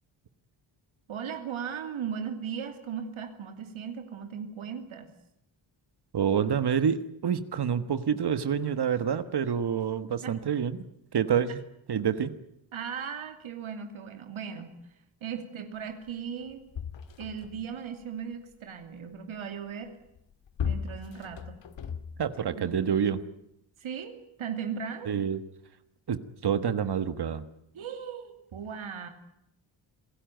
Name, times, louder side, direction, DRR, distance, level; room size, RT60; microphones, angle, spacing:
voice 1, 1.1-5.1 10.2-10.4 12.7-14.7 15.2-16.6 17.2-20.0 20.6-21.6 22.6-22.7 23.8-25.1 27.7-29.1, right 7 dB, 80° right, 6 dB, 2.9 m, -37 dB
voice 2, 6.1-10.8 11.1-11.6 11.9-12.3 22.2-23.2 25.1-25.4 26.1-27.4, right 7 dB, 55° right, 12 dB, 1.5 m, -27 dB
sound 1, 16.1-16.2 16.4-17.8 20.0-22.5 23.2-23.3, left 7 dB, 65° left, 2.3 m, -36 dB
27.5 x 17.0 x 9.2 m, 0.81 s
wide cardioid pair, 140°, 48 cm